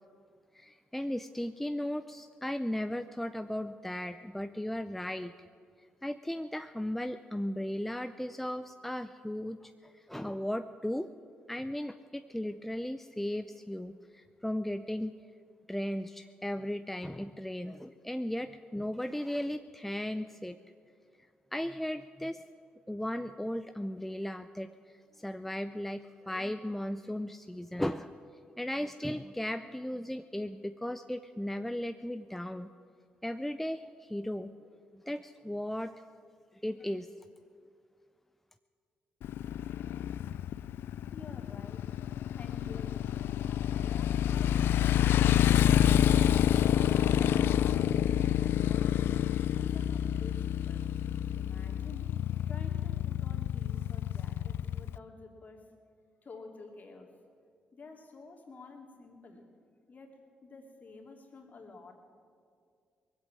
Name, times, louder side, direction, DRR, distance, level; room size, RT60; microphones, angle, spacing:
voice 1, 0.5-5.3 6.0-11.1 11.5-15.1 15.7-20.6 21.5-22.4 22.9-24.7 25.2-28.1 28.6-32.7 33.2-34.5 35.1-35.9 36.6-37.1, left 1 dB, 5° left, 9 dB, 0.6 m, -36 dB
Motorcycle, 39.2-55.0, left 11 dB, 70° left, 0.3 m, -28 dB
voice 2, 41.1-41.9 42.3-44.6 46.7-49.2 49.5-50.9 51.3-52.2 52.5-55.7 56.2-57.1 57.7-59.4 59.9-61.9, left 3 dB, 45° left, 1 dB, 2.8 m, -50 dB
20.0 x 8.1 x 8.7 m, 2.2 s
hypercardioid pair, 50°, 4 cm